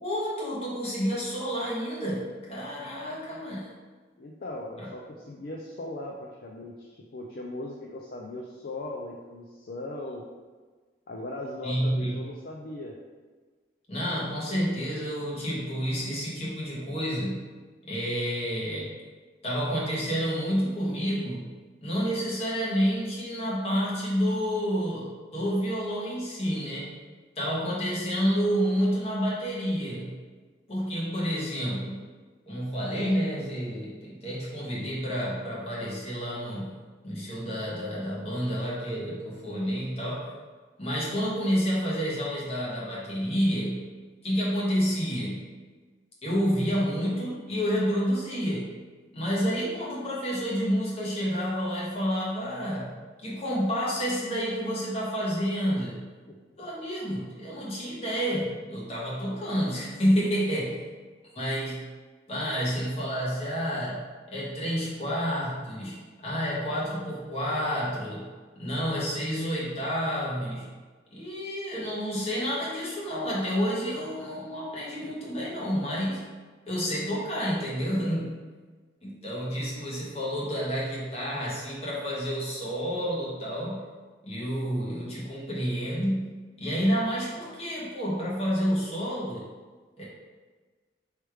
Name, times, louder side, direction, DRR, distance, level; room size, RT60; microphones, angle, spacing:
voice 1, 0.0-3.7 4.8-4.9 11.6-12.2 13.9-17.5 17.9-18.9 19.4-21.5 21.8-26.9 27.4-30.2 30.7-32.0 32.5-40.3 40.8-43.8 44.2-45.5 46.2-48.7 49.1-53.0 53.2-56.0 56.6-60.8 61.3-61.9 62.3-70.7 71.1-76.3 76.7-78.3 79.0-83.8 84.2-86.3 86.6-89.4 90.0-90.1, equal, 35° left, -6 dB, 1.2 m, -29 dB
voice 2, 4.2-10.2 11.1-13.0, left 1 dB, 50° left, -1 dB, 0.4 m, -38 dB
3.2 x 3.1 x 4.7 m, 1.4 s
head